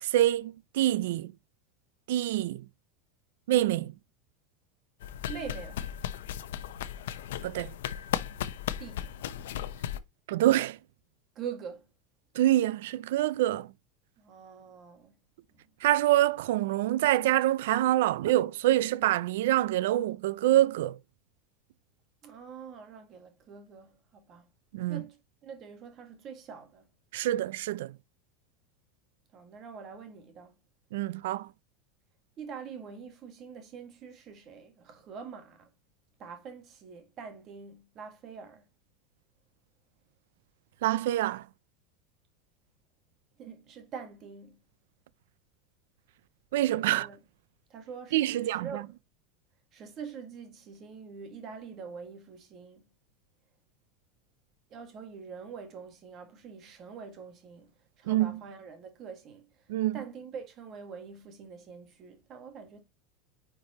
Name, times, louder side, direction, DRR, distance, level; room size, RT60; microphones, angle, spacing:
voice 1, 0.0-1.3 2.1-2.6 3.5-3.9 7.4-7.7 10.3-10.8 12.3-13.7 15.8-21.0 24.7-25.0 27.1-27.9 30.9-31.5 40.8-41.4 46.5-47.1 48.1-48.8 58.1-58.4 59.7-60.0, right 14 dB, 70° right, 0.4 m, -26 dB
sound 1, 5.0-10.0, left 11 dB, 85° left, 0.7 m, -36 dB
voice 2, 5.3-5.9 8.8-9.1 11.3-11.9 14.2-15.1 22.2-24.5 24.9-26.9 29.3-30.5 32.4-35.7 36.2-38.7 43.4-44.6 46.7-47.2 47.7-48.9 49.7-52.8 54.7-57.7 58.0-59.5 59.9-62.8, right 6 dB, 25° right, 1.7 m, -44 dB
9.6 x 4.6 x 2.8 m
supercardioid pair, 180°, 0 cm